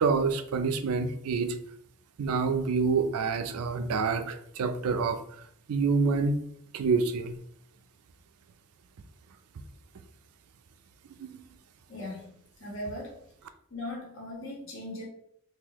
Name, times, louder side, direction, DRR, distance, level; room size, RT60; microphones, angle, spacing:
voice 1, 0.0-1.6 2.2-5.2 5.7-6.4 6.7-7.4 11.3-11.4, right 4 dB, 80° right, 9 dB, 0.4 m, -27 dB
voice 2, 11.9-13.2 13.7-15.0, left 1 dB, 60° left, -3 dB, 1.3 m, -39 dB
3.9 x 2.6 x 2.9 m, 0.69 s
head